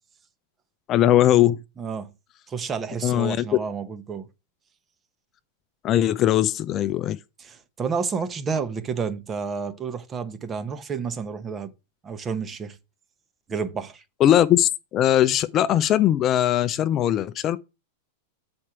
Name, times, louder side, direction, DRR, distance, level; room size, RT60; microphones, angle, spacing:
voice 1, 0.9-1.6 3.0-3.4 5.8-7.2 14.2-17.6, left 12 dB, 35° left, 0.5 m, -20 dB
voice 2, 1.8-2.1 2.5-4.3 7.4-11.7 12.0-12.8 13.5-14.0, right 5 dB, 25° right, 1.0 m, -30 dB
7.4 x 4.4 x 4.7 m
hypercardioid pair, 110°, 0 cm